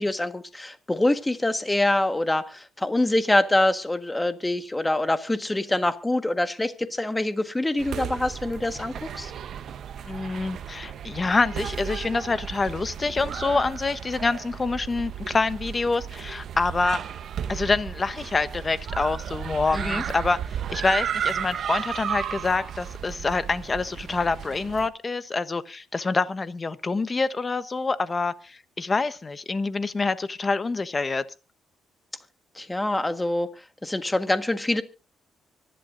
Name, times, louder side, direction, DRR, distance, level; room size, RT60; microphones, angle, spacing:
voice 1, 0.0-9.3 19.7-20.0 32.5-33.5 33.8-34.8, left 1 dB, 15° left, 1.5 m, -25 dB
sound 1, 7.8-24.9, right 8 dB, 65° right, 1.0 m, -34 dB
voice 2, 10.0-17.0 17.5-31.2, left 3 dB, 30° left, 1.1 m, -26 dB
25.0 x 11.5 x 2.6 m
cardioid pair, 90°, 0 cm